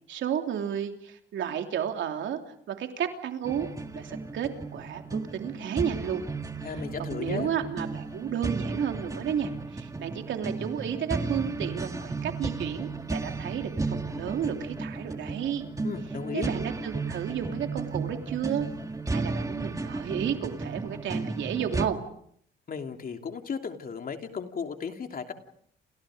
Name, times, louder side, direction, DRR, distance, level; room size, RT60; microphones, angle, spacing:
voice 1, 0.1-3.7 3.9-6.3 7.1-15.7 16.3-18.7 19.1-22.0, right 9 dB, 75° right, 5 dB, 3.1 m, -32 dB
sound 1, 3.5-21.9, right 3 dB, 15° right, 1.9 m, -34 dB
voice 2, 6.6-7.5 15.8-16.5 22.7-25.3, left 6 dB, 45° left, 5 dB, 3.0 m, -35 dB
29.5 x 29.0 x 5.1 m, 0.67 s
cardioid pair, 90°, 20 cm